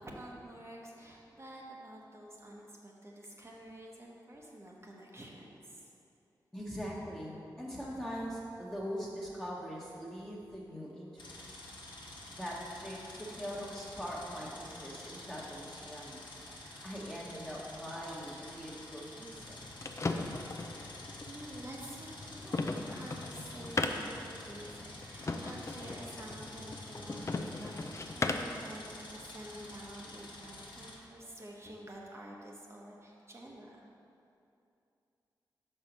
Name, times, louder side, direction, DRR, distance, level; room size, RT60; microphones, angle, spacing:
voice 1, 0.0-5.9 20.7-33.8, right 1 dB, 35° right, -3 dB, 0.9 m, -49 dB
voice 2, 6.5-11.5 12.4-16.4 16.8-19.6 20.2-20.3, equal, 5° left, -6 dB, 1.2 m, -42 dB
sound 1, 11.2-31.0, left 1 dB, 70° left, 1.2 m, -49 dB
sound 2, 19.4-28.6, left 3 dB, 35° left, 0.4 m, -38 dB
5.5 x 4.5 x 5.2 m, 2.6 s
cardioid pair, 55°, 8 cm